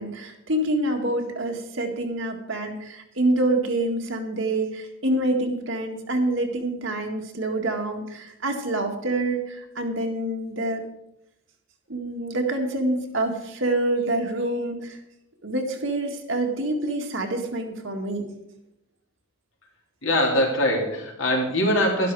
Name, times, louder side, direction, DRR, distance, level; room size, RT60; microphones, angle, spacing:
voice 1, 0.0-10.8 11.9-15.0 15.4-18.3, right 1 dB, 60° right, 3 dB, 1.9 m, -26 dB
voice 2, 20.0-22.1, left 1 dB, 60° left, -1 dB, 3.5 m, -22 dB
12.0 x 12.0 x 4.8 m, 0.83 s
head